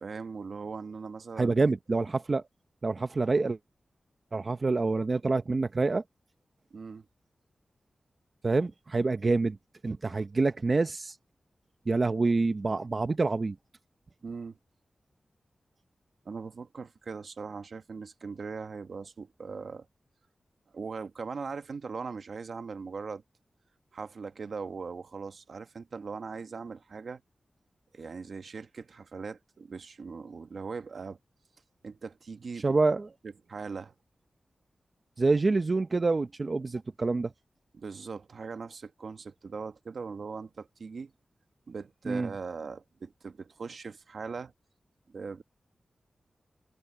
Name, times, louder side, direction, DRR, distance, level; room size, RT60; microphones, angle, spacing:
voice 1, 0.0-1.7 6.7-7.0 14.2-14.6 16.2-19.9 20.7-23.2 23.9-27.2 27.9-31.2 31.8-32.7 33.5-33.9 37.7-41.1 41.7-44.5 45.1-45.4, right 5 dB, 65° right, 1.1 m, -40 dB
voice 2, 1.4-2.4 2.8-3.6 4.3-6.0 8.4-9.6 9.8-11.2 11.9-13.6 32.6-33.1 35.2-37.3 42.1-42.3, right 3 dB, 35° right, 0.7 m, -27 dB
wide cardioid pair, 140°, 0 cm